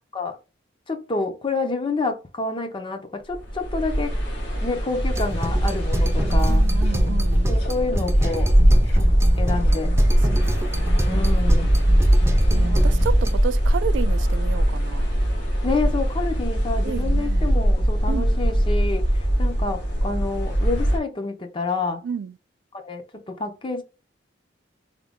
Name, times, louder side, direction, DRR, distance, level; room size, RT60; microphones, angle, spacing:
voice 1, 0.9-4.2 4.6-6.7 7.5-8.5 9.0-9.1 9.4-9.9 11.1-11.8 12.2-13.0 15.6-22.0 22.7-23.8, left 3 dB, 30° left, 0.6 m, -28 dB
sound 1, 3.3-21.0, equal, 75° left, 1.4 m, -20 dB
sound 2, 5.1-13.3, right 1 dB, 15° right, 0.5 m, -28 dB
sound 3, 5.3-14.4, equal, 60° left, 1.8 m, -46 dB
voice 2, 6.5-7.5 10.3-10.8 12.5-15.1 16.8-17.6 18.1-18.3 22.0-22.3, right 6 dB, 75° right, 0.3 m, -31 dB
3.6 x 2.2 x 3.5 m
head